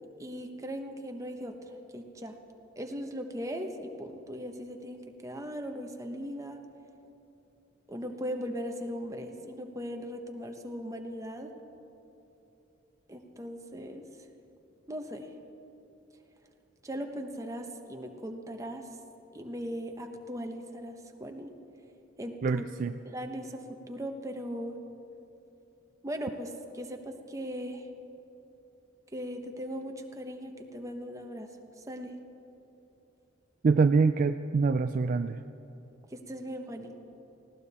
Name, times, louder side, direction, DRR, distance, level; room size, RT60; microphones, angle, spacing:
voice 1, 0.2-2.3 2.8-6.6 7.9-11.5 13.1-14.0 14.9-15.3 16.8-18.9 19.3-21.5 22.2-22.6 23.0-24.8 26.0-27.9 29.1-31.5 31.8-32.1 36.1-37.0, equal, 15° right, 4 dB, 1.1 m, -38 dB
voice 2, 22.4-22.9 33.6-35.4, right 4 dB, 45° right, 9 dB, 0.3 m, -25 dB
19.0 x 16.5 x 4.2 m, 3.0 s
head